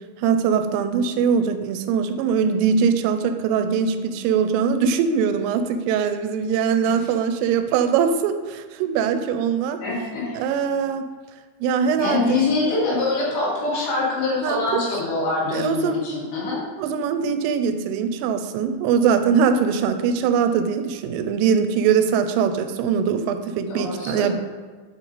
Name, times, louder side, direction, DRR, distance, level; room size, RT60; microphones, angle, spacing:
voice 1, 0.2-9.8 10.4-11.1 11.6-12.4 14.4-14.8 15.5-16.0 16.8-24.3, right 6 dB, 90° right, 9 dB, 3.1 m, -22 dB
voice 2, 9.8-10.4 12.0-16.6 23.7-24.3, left 3 dB, 65° left, -7 dB, 3.8 m, -24 dB
7.9 x 4.5 x 4.0 m, 1.4 s
omnidirectional pair, 5.7 m